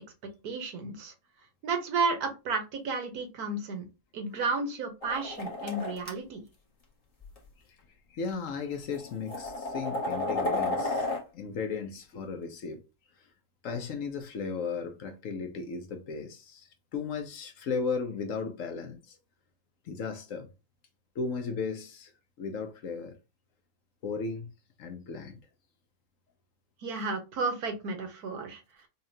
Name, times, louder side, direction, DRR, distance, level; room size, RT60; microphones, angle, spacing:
voice 1, 0.4-1.1 1.6-3.9 4.1-6.4 26.8-28.6, right 4 dB, 80° right, 1.5 m, -32 dB
sound 1, 5.0-6.1 7.2-7.4 8.3-8.4 8.9-11.2, left 2 dB, 25° left, 1.0 m, -32 dB
voice 2, 8.1-11.1 11.3-12.8 13.6-19.2 19.8-20.5 21.1-22.1 22.4-23.2 24.0-24.5 24.8-25.4, left 5 dB, 65° left, 1.0 m, -35 dB
5.4 x 2.4 x 2.7 m
omnidirectional pair, 1.6 m